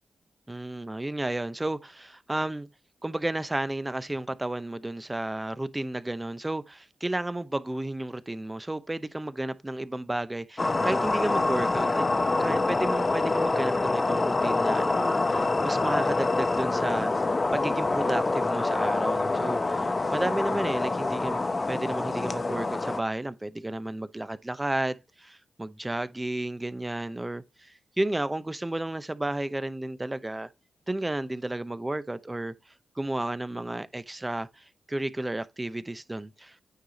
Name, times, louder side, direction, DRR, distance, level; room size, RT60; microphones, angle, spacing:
voice 1, 0.5-2.7 3.0-12.1 12.4-17.1 17.5-21.4 21.7-30.5 30.9-32.5 33.0-36.6, right 1 dB, 20° right, 0.8 m, -32 dB
sound 1, 10.6-23.0, left 3 dB, 35° left, 0.8 m, -26 dB
9.2 x 4.7 x 4.1 m
cardioid pair, 65°, 0 cm